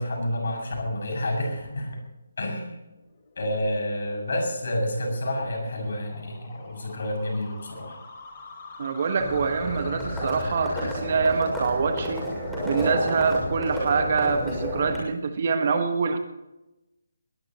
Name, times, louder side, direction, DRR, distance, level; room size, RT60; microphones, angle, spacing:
voice 1, 0.0-2.0 2.4-2.7 3.4-8.0, left 1 dB, 55° left, 1 dB, 7.3 m, -29 dB
sound 1, 2.9-10.9, left 4 dB, 30° left, 4.6 m, -45 dB
voice 2, 8.8-12.3 12.6-16.2, right 5 dB, 40° right, 7 dB, 1.6 m, -25 dB
Livestock farm animals working animals, 9.2-15.0, equal, ahead, 6.4 m, -30 dB
20.5 x 20.0 x 3.1 m, 0.96 s
figure-of-eight pair, 145°, 0 cm